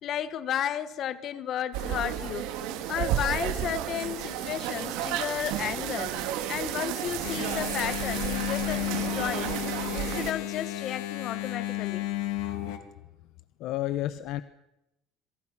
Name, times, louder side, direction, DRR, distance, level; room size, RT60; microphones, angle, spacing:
voice 1, 0.0-2.5 2.9-6.2 6.5-9.5 9.9-12.1, left 10 dB, 50° left, 1.6 m, -33 dB
sound 1, 1.7-10.3, right 11 dB, 85° right, 2.7 m, -32 dB
Engine, 7.2-12.8, left 15 dB, 90° left, 3.1 m, -33 dB
voice 2, 13.6-14.4, left 14 dB, 65° left, 0.9 m, -32 dB
26.5 x 23.5 x 6.1 m
cardioid pair, 135°, 0 cm